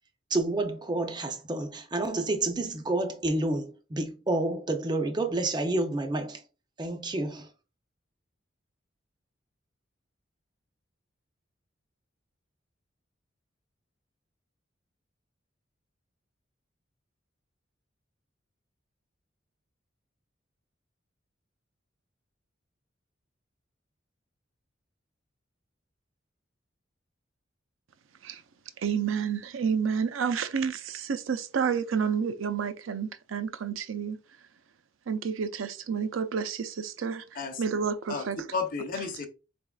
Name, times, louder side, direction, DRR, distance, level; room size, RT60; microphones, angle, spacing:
voice 1, 0.3-6.4 6.8-7.5, right 2 dB, 20° right, 0.5 m, -29 dB
voice 2, 28.8-34.2 35.1-37.2 37.6-38.4, right 6 dB, 85° right, 0.4 m, -30 dB
voice 3, 38.1-39.3, left 4 dB, 45° left, 0.7 m, -33 dB
4.1 x 3.5 x 2.3 m
head